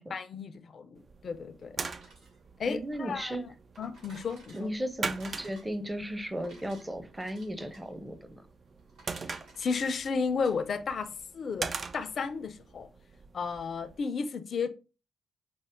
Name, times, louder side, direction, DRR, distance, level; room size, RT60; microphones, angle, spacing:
voice 1, 0.1-1.8 2.6-3.5 3.8-4.7 9.6-12.9 13.3-14.7, left 5 dB, 55° left, 0.5 m, -33 dB
Toothbrush counter, 1.0-14.0, right 4 dB, 45° right, 0.4 m, -43 dB
sound 1, 1.6-10.6, right 2 dB, 75° right, 2.0 m, -57 dB
voice 2, 2.7-3.5 4.5-8.4, equal, 15° right, 0.7 m, -35 dB
5.1 x 2.0 x 3.6 m
hypercardioid pair, 45°, 0 cm